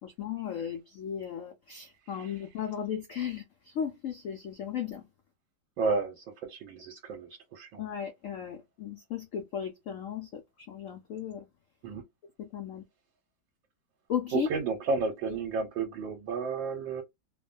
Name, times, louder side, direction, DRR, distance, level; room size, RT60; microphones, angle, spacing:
voice 1, 0.0-5.1 7.8-11.5 12.4-12.8 14.1-14.5 15.3-15.4, left 8 dB, 85° left, 0.7 m, -36 dB
voice 2, 5.8-7.8 11.8-12.0 14.3-17.0, right 4 dB, 85° right, 1.4 m, -32 dB
3.1 x 2.1 x 2.4 m
omnidirectional pair, 2.1 m